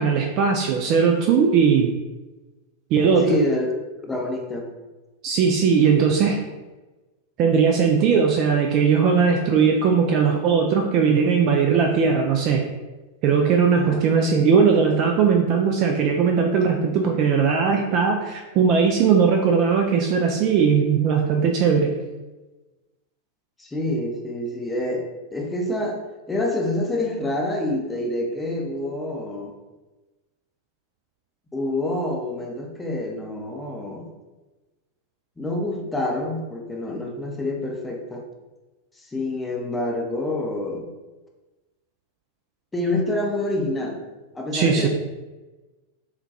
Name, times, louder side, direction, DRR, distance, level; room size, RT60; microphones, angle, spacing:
voice 1, 0.0-1.9 2.9-3.3 5.2-6.4 7.4-12.6 13.2-21.9 44.5-44.9, right 6 dB, 40° right, 2 dB, 0.3 m, -19 dB
voice 2, 3.2-3.7 4.0-4.7 13.7-14.0 23.6-26.0 26.3-29.5 31.5-34.1 35.4-38.3 39.0-40.9 42.7-44.0 44.3-44.9, left 1 dB, 10° left, 0 dB, 0.6 m, -27 dB
3.5 x 2.2 x 2.8 m, 1.1 s
figure-of-eight pair, 90°, 0 cm